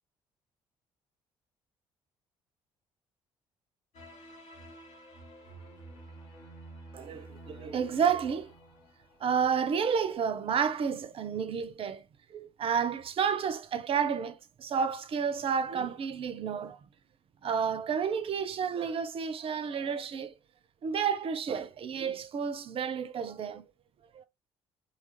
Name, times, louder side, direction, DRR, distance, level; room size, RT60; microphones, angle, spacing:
sound 1, 3.9-9.7, right 1 dB, 55° left, 1.0 m, -50 dB
voice 1, 6.9-8.5 9.2-16.8 17.4-20.3 20.8-23.6 24.1-24.3, right 7 dB, 40° right, 0.4 m, -31 dB
2.8 x 2.4 x 2.8 m
figure-of-eight pair, 45°, 15 cm